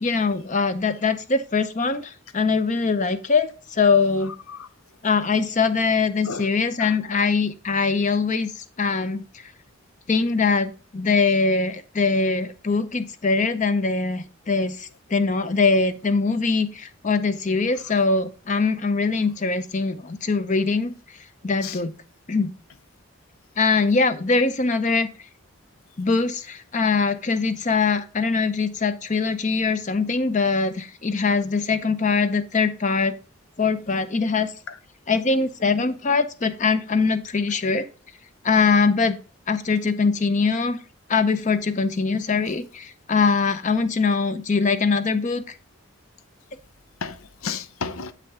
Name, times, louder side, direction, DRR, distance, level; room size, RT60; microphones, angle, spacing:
voice 1, 0.0-4.3 5.0-8.5 8.8-9.2 10.1-20.9 21.4-21.9 22.3-22.5 23.6-25.1 26.0-33.1 33.6-34.5 35.1-37.9 38.4-39.2 39.5-40.8 41.1-45.4, left 4 dB, 35° left, 0.6 m, -22 dB
voice 2, 6.8-7.2 21.6-21.8 34.7-34.8 47.0-48.1, left 5 dB, 80° left, 0.7 m, -33 dB
8.0 x 5.9 x 3.6 m
head